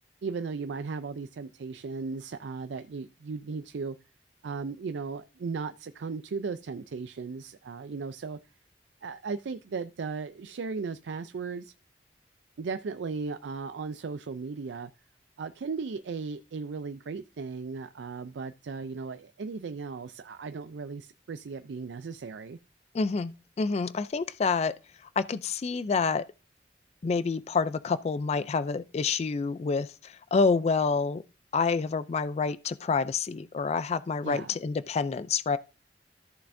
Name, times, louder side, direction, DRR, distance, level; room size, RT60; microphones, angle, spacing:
voice 1, 0.2-4.0 4.4-8.4 9.0-11.7 12.6-14.9 15.4-22.6 34.2-34.6, right 4 dB, 80° right, 0.4 m, -36 dB
voice 2, 22.9-24.7 25.2-26.2 27.0-31.2 31.5-35.6, left 4 dB, 35° left, 0.3 m, -28 dB
14.0 x 6.7 x 2.6 m
head